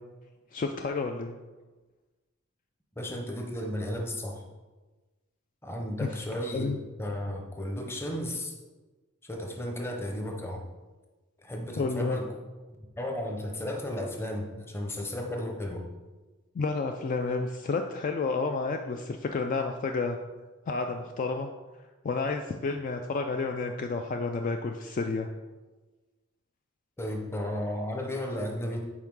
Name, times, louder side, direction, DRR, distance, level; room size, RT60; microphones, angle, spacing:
voice 1, 0.5-1.4 6.0-6.1 6.5-6.8 11.8-12.2 16.6-20.2 20.7-21.5 22.0-25.3, left 4 dB, 40° left, 4 dB, 0.3 m, -30 dB
voice 2, 3.0-4.4 5.6-8.5 9.2-10.6 11.4-12.3 13.0-15.9 27.0-28.9, left 1 dB, 10° left, 2 dB, 0.7 m, -34 dB
5.6 x 4.5 x 4.7 m, 1.2 s
head